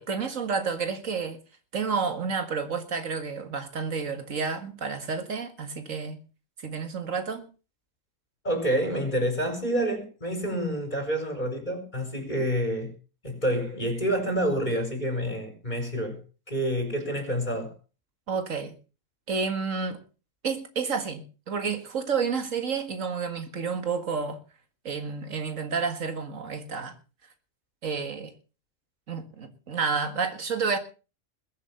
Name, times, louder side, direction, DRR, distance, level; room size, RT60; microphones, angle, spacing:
voice 1, 0.0-1.4 1.7-6.2 6.6-7.5 18.3-18.7 19.3-20.0 20.4-24.4 24.8-27.0 27.8-28.3 29.1-30.8, right 5 dB, 85° right, 2.2 m, -30 dB
voice 2, 8.4-12.9 13.2-17.7, equal, 35° left, 4.7 m, -28 dB
21.5 x 7.4 x 5.6 m
omnidirectional pair, 1.3 m